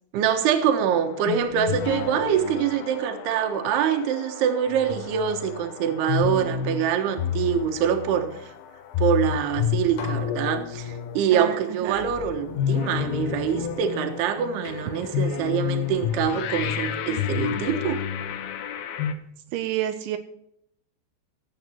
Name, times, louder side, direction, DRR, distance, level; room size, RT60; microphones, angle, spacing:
voice 1, 0.1-8.5 9.0-18.0, right 8 dB, 70° right, 8 dB, 3.0 m, -25 dB
sound 1, 0.8-19.1, left 9 dB, 70° left, 2.4 m, -30 dB
sound 2, 9.4-9.5 10.0-11.3 11.9-14.2 14.7-16.5, left 5 dB, 90° left, 4.7 m, -41 dB
voice 2, 11.3-12.1 19.5-20.2, right 12 dB, 85° right, 7 dB, 3.1 m, -29 dB
18.0 x 8.1 x 4.5 m, 0.75 s
omnidirectional pair, 5.4 m